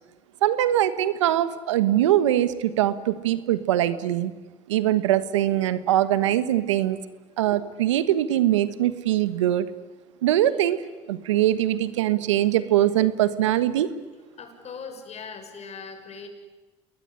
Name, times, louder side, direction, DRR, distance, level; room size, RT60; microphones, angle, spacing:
voice 1, 0.4-4.3 4.7-7.0 7.4-9.7 10.2-10.8 11.1-13.9, right 12 dB, 90° right, 14 dB, 1.4 m, -22 dB
voice 2, 14.4-16.3, left 5 dB, 45° left, 6 dB, 6.5 m, -39 dB
28.0 x 21.0 x 9.9 m, 1.3 s
hypercardioid pair, 75°, 15 cm